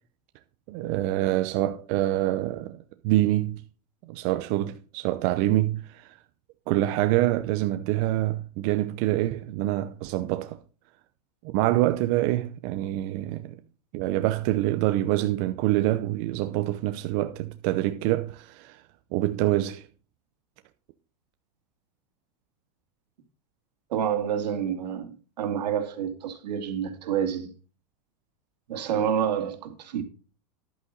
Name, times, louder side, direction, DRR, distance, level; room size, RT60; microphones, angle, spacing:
voice 1, 0.7-3.6 4.0-6.2 6.7-10.6 11.4-13.6 13.9-18.8 19.1-19.9, right 15 dB, 45° right, 0.7 m, -26 dB
voice 2, 23.9-25.1 25.4-27.5 28.7-30.0, right 8 dB, 85° right, 2.6 m, -28 dB
11.0 x 8.2 x 3.9 m
supercardioid pair, 150°, 21 cm